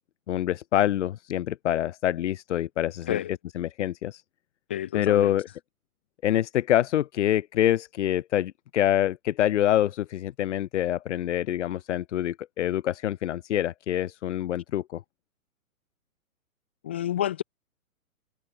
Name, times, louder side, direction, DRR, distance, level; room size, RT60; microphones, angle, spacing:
voice 1, 0.3-3.2 3.6-4.2 4.9-5.5 6.2-15.0, left 12 dB, 55° left, 1.0 m, -26 dB
voice 2, 4.7-5.3 16.8-17.4, left 11 dB, 10° left, 0.3 m, -29 dB
hypercardioid pair, 135°, 42 cm